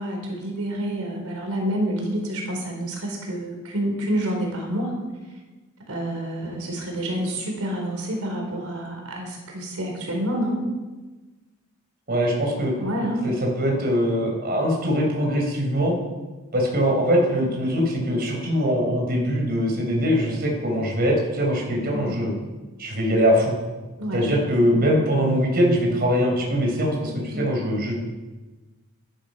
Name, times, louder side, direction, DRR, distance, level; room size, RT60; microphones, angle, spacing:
voice 1, 0.0-4.9 5.9-10.6 12.8-13.3 21.9-22.3 24.0-25.1 27.3-27.6, right 1 dB, 85° right, 1 dB, 4.4 m, -28 dB
voice 2, 12.1-12.7 13.2-15.9 16.5-22.3 22.8-23.5 24.1-27.9, equal, 45° right, 0 dB, 4.5 m, -22 dB
20.5 x 11.5 x 5.6 m, 1.2 s
head